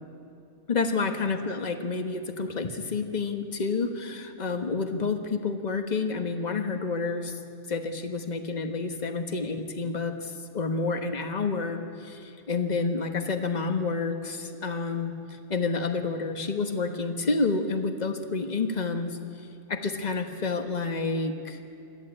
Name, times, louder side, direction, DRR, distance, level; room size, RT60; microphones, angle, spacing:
voice 1, 0.7-7.4 7.7-19.2 19.7-21.6, left 4 dB, 35° left, 6 dB, 1.4 m, -29 dB
23.0 x 14.0 x 8.8 m, 2.6 s
omnidirectional pair, 1.4 m